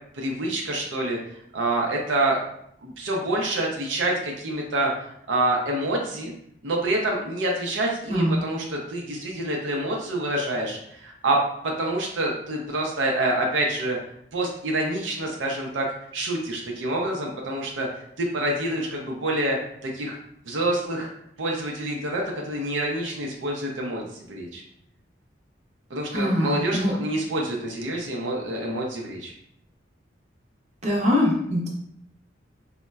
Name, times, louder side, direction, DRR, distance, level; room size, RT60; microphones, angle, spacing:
voice 1, 0.1-1.2 1.5-2.4 2.8-6.3 6.6-14.0 14.3-15.9 16.1-17.9 18.2-20.2 20.5-21.1 21.4-24.6 25.9-29.3, right 1 dB, 85° right, 0 dB, 0.5 m, -27 dB
voice 2, 8.1-8.4 26.1-26.9 30.8-31.7, left 1 dB, 35° right, -3 dB, 0.6 m, -23 dB
4.0 x 2.1 x 2.2 m, 0.72 s
head